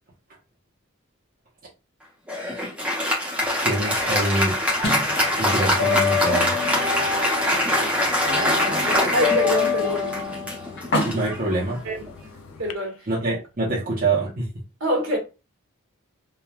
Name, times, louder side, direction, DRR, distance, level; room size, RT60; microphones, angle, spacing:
Applause, 2.3-12.1, left 1 dB, 5° right, 0.7 m, -24 dB
sound 1, 3.4-4.6 4.8-12.7, left 7 dB, 75° left, 0.4 m, -28 dB
voice 1, 3.6-4.6 5.4-6.6 11.0-11.8 13.1-14.5, right 2 dB, 45° right, 0.8 m, -25 dB
sound 2, 4.8-12.6, left 1 dB, 55° left, 0.9 m, -34 dB
voice 2, 9.1-10.2 11.8-12.0 12.2-12.3 12.6-13.1 14.8-15.2, equal, 70° right, 1.2 m, -25 dB
3.0 x 2.3 x 2.3 m
head